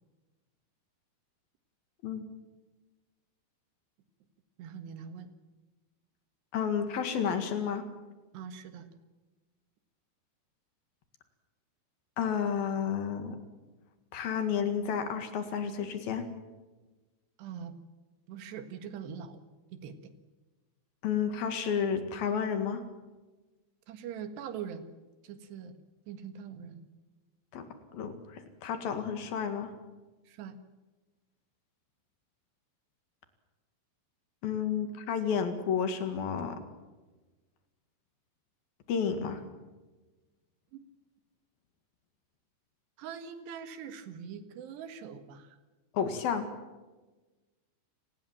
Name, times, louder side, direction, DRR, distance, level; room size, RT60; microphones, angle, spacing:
voice 1, 4.6-5.3 8.3-8.9 17.4-17.8 18.3-19.4 19.7-20.1 23.9-24.9 25.2-25.8 26.1-26.9 30.3-30.6 40.7-40.8 43.0-45.6, right 7 dB, 80° right, 10 dB, 3.8 m, -42 dB
voice 2, 6.5-7.9 12.2-13.4 14.1-16.2 21.0-22.8 27.5-27.6 27.9-29.7 34.4-36.6 38.9-39.4 45.9-46.5, left 7 dB, 65° left, 8 dB, 3.6 m, -31 dB
29.5 x 19.5 x 7.5 m, 1.2 s
omnidirectional pair, 4.8 m